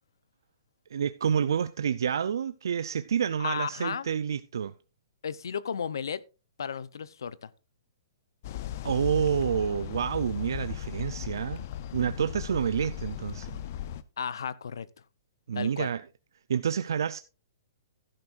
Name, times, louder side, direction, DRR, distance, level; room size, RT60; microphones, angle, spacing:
voice 1, 0.9-4.7 8.8-11.7 11.9-13.5 15.5-16.0 16.5-17.2, right 7 dB, 80° right, 0.4 m, -28 dB
voice 2, 3.4-4.1 5.2-6.2 6.6-7.5 14.2-14.9 15.5-15.9, left 7 dB, 85° left, 0.6 m, -34 dB
sound 1, 8.4-14.0, left 11 dB, 40° left, 0.6 m, -37 dB
12.0 x 10.5 x 2.5 m
hypercardioid pair, 165°, 2 cm